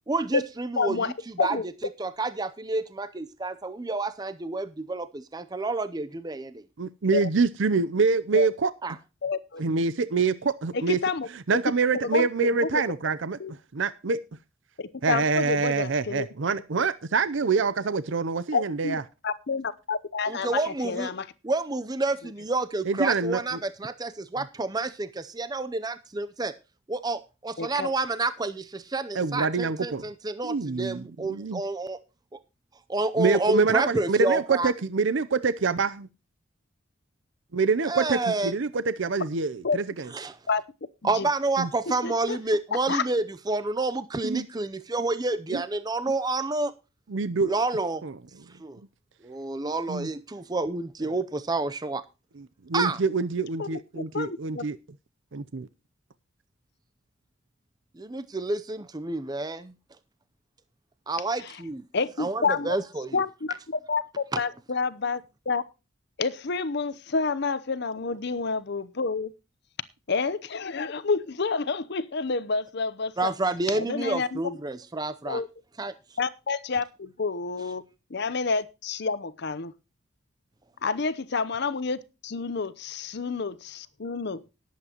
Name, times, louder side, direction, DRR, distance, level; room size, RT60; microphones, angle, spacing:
voice 1, 0.1-1.6 2.0-6.6 8.8-9.0 20.3-21.1 21.4-26.5 26.9-32.0 32.3-32.4 32.9-34.7 37.8-38.5 40.1-40.4 41.0-46.7 47.4-48.0 48.6-48.8 49.2-52.0 52.7-53.0 57.9-59.7 61.1-61.9 62.2-63.2 64.3-64.4 73.2-75.4 75.8-75.9, right 2 dB, 20° right, 0.6 m, -29 dB
voice 2, 0.8-1.1 1.4-1.6 7.1-7.3 8.3-8.5 9.2-9.6 10.7-11.3 12.0-12.8 13.4-13.5 14.8-16.3 18.5-19.0 19.2-21.3 27.6-27.9 39.6-39.8 40.5-40.6 41.1-41.3 42.0-42.4 42.9-43.0 53.6-53.8 54.1-54.7 61.4-61.6 61.9-62.8 63.1-65.2 65.5-65.6 66.2-69.3 70.1-73.3 73.7-74.4 75.2-75.5 76.2-77.8 78.1-79.7 80.8-84.4, left 4 dB, 55° left, 0.8 m, -29 dB
voice 3, 6.8-8.7 9.6-11.0 11.5-13.4 13.7-14.2 15.0-19.0 22.9-23.4 29.1-30.0 30.4-31.6 33.2-36.1 37.5-40.1 41.6-41.7 44.2-44.5 45.5-45.6 47.1-47.5 48.0-48.1 49.9-50.1 52.7-54.8 55.3-55.7, right 4 dB, 65° right, 0.6 m, -25 dB
19.0 x 8.4 x 2.9 m
head